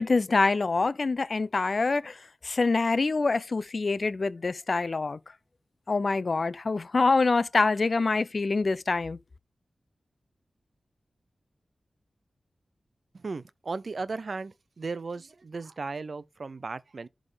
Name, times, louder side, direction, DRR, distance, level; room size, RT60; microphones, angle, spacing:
voice 1, 0.0-2.2 2.4-5.2 5.9-9.2, left 3 dB, 55° left, 0.6 m, -25 dB
voice 2, 13.1-17.1, right 4 dB, 65° right, 0.7 m, -36 dB
11.0 x 3.7 x 5.0 m
cardioid pair, 55°, 0 cm